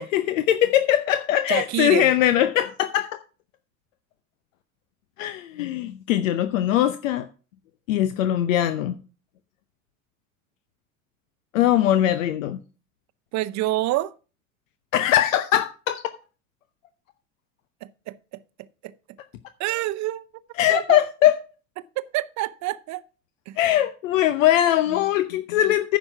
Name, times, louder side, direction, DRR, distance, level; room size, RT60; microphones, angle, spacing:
voice 1, 0.0-3.2 5.2-7.3 7.9-9.0 11.5-12.6 14.9-16.0 20.6-21.4 23.6-26.0, left 12 dB, 70° left, 0.8 m, -21 dB
voice 2, 1.5-2.1 13.3-14.1 18.1-18.2 18.8-18.9 19.6-20.2 20.7-21.0 22.0-23.0 23.5-23.6, right 16 dB, 45° right, 0.7 m, -27 dB
9.8 x 6.1 x 5.9 m
hypercardioid pair, 80°, 41 cm